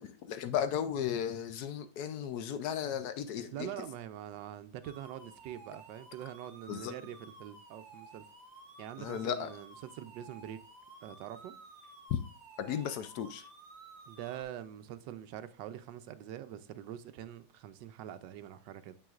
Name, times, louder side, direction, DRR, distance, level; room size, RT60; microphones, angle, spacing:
voice 1, 0.0-3.7 6.7-6.9 9.0-9.5 12.1-12.2 12.6-13.4, left 9 dB, 70° left, 1.0 m, -35 dB
voice 2, 3.5-8.2 8.8-10.6 11.0-11.5 14.1-19.0, right 11 dB, 80° right, 1.3 m, -44 dB
sound 1, 4.8-14.4, right 3 dB, 65° right, 1.7 m, -54 dB
9.2 x 6.9 x 2.4 m
omnidirectional pair, 1.9 m